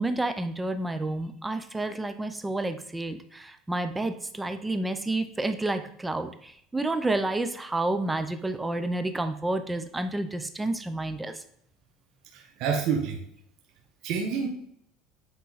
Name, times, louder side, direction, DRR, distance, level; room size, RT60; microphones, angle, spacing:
voice 1, 0.0-11.4, right 2 dB, 10° right, 9 dB, 0.7 m, -30 dB
voice 2, 12.3-13.2 14.0-14.5, right 6 dB, 60° right, 1 dB, 1.1 m, -28 dB
8.3 x 3.8 x 4.1 m, 0.68 s
supercardioid pair, 110°, 0 cm